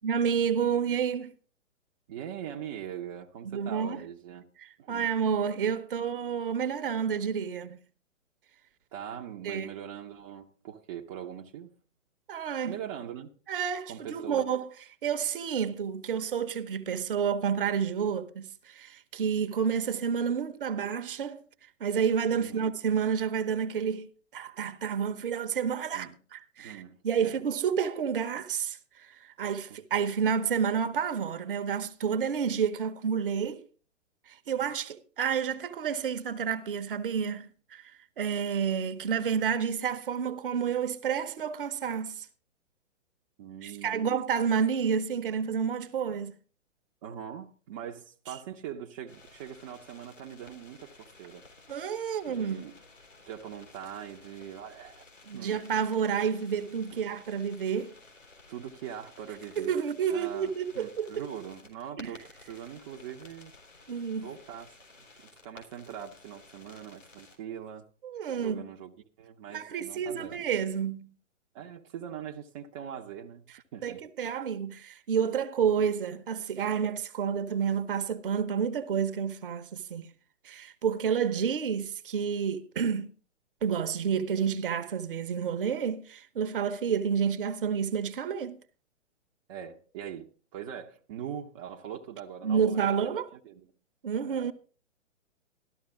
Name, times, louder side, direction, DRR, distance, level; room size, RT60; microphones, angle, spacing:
voice 1, 0.0-1.3 3.4-4.0 4.6-7.8 9.4-9.7 12.3-12.8 13.5-14.7 15.0-21.4 21.8-33.6 34.3-42.3 43.6-46.3 51.7-52.7 55.3-57.9 59.6-61.2 62.0-62.1 63.9-64.3 68.0-68.7 69.5-71.1 73.8-80.1 80.4-83.1 83.6-88.6 92.4-93.3 94.0-94.5, right 7 dB, 45° right, 1.0 m, -30 dB
voice 2, 2.1-4.4 4.8-5.2 8.9-11.8 12.7-13.3 13.9-14.5 22.3-22.7 25.9-26.2 26.6-27.4 29.7-29.8 34.6-34.7 43.4-44.1 47.0-51.4 52.3-52.8 53.2-55.0 55.3-55.6 58.5-63.5 64.2-64.7 65.4-67.9 68.4-68.9 69.2-70.5 71.5-73.4 73.7-74.0 89.5-93.7 94.2-94.5, right 9 dB, 25° right, 0.8 m, -42 dB
sound 1, 49.1-67.4, left 3 dB, 75° left, 4.1 m, -55 dB
13.0 x 12.5 x 3.7 m
figure-of-eight pair, 120°, 38 cm